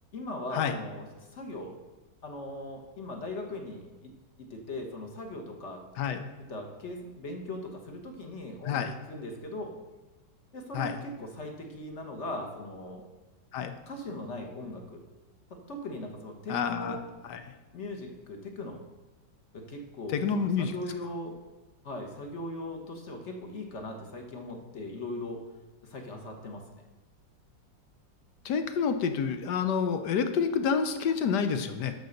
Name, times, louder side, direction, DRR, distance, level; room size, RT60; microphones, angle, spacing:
voice 1, 0.1-1.1 1.3-1.7 2.2-4.1 4.4-5.8 6.5-8.8 9.1-9.7 10.5-13.0 13.9-15.0 15.5-17.0 17.7-18.8 19.5-21.4 21.8-25.4 25.8-26.8, left 1 dB, 45° left, 3 dB, 1.4 m, -39 dB
voice 2, 16.5-17.0 17.3-17.4 20.1-20.7 28.4-31.9, left 6 dB, 70° left, 8 dB, 1.3 m, -28 dB
12.0 x 4.0 x 6.5 m, 1.2 s
omnidirectional pair, 1.9 m